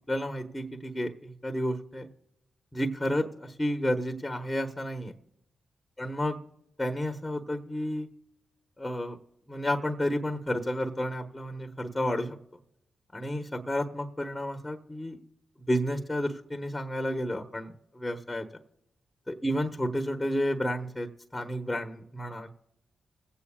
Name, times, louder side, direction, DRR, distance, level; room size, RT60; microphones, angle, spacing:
voice 1, 0.1-2.1 2.7-5.1 6.0-6.4 6.8-8.1 8.8-9.2 9.5-12.4 13.1-15.2 15.7-18.5 19.3-22.5, equal, 20° left, 3 dB, 1.2 m, -31 dB
23.5 x 8.4 x 2.4 m, 0.83 s
supercardioid pair, 45°, 0 cm